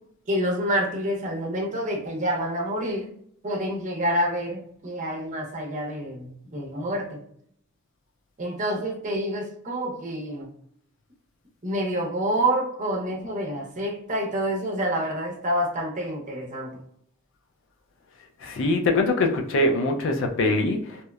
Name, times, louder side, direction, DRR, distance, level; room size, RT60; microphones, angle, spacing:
voice 1, 0.3-3.1 3.4-7.2 8.4-10.5 11.6-16.8, right 1 dB, 35° right, 0 dB, 0.7 m, -27 dB
voice 2, 18.4-21.0, left 2 dB, 65° left, 3 dB, 0.4 m, -23 dB
2.8 x 2.0 x 2.3 m, 0.66 s
head